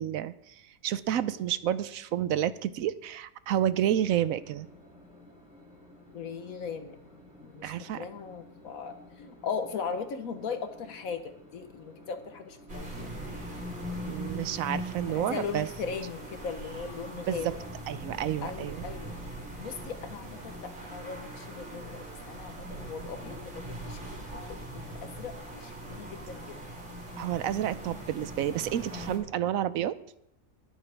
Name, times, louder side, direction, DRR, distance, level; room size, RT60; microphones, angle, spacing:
voice 1, 0.0-4.7 7.6-8.0 14.0-15.7 17.3-17.6 17.9-18.8 27.2-30.0, right 11 dB, 75° right, 15 dB, 1.0 m, -30 dB
sound 1, 3.8-21.8, left 1 dB, 5° right, 3.8 m, -54 dB
voice 2, 6.1-7.0 7.4-13.1 15.1-17.6 18.4-19.1 19.6-26.5, left 6 dB, 70° left, 8 dB, 1.5 m, -38 dB
sound 2, 12.7-29.2, right 1 dB, 50° right, 3.9 m, -41 dB
22.5 x 7.9 x 3.4 m, 0.79 s
omnidirectional pair, 1.5 m